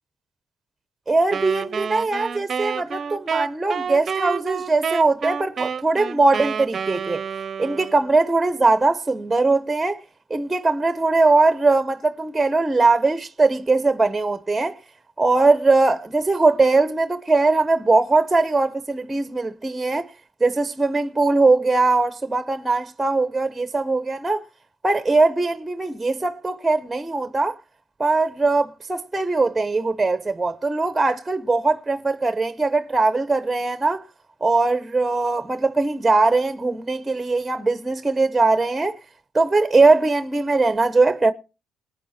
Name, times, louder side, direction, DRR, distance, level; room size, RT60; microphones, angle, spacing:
voice 1, 1.1-7.2 7.6-10.0 10.3-14.7 15.2-20.1 20.4-24.4 24.8-27.6 28.0-34.0 34.4-39.0 39.3-41.3, right 3 dB, 15° right, 0.8 m, -20 dB
Wind instrument woodwind instrument, 1.3-8.1, right 6 dB, 45° right, 0.6 m, -29 dB
20.0 x 9.4 x 4.3 m
cardioid pair, 90°, 0 cm